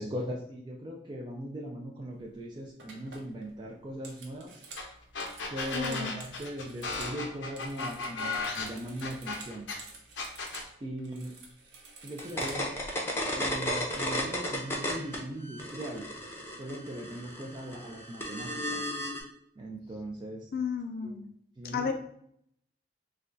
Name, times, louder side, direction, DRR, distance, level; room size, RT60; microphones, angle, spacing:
voice 1, 0.0-4.6 5.5-9.7 10.8-11.3 12.0-12.8 13.3-16.1 16.6-18.8 19.6-20.5 21.0-21.1 21.6-21.9, right 1 dB, 25° right, -2 dB, 0.4 m, -39 dB
sound 1, 2.2-2.4 2.8-7.2 7.5-10.7 11.0-12.9, right 3 dB, 75° right, 0.8 m, -50 dB
sound 2, 4.8-4.9 5.1-9.8 10.2-10.7, left 4 dB, 80° left, 0.7 m, -35 dB
voice 2, 5.7-6.2 20.5-21.3 21.6-21.9, left 6 dB, 55° left, 5 dB, 0.4 m, -33 dB
sound 3, 12.2-15.2 15.5-19.2, left 1 dB, 15° left, 0.6 m, -33 dB
3.3 x 2.3 x 3.7 m, 0.69 s
head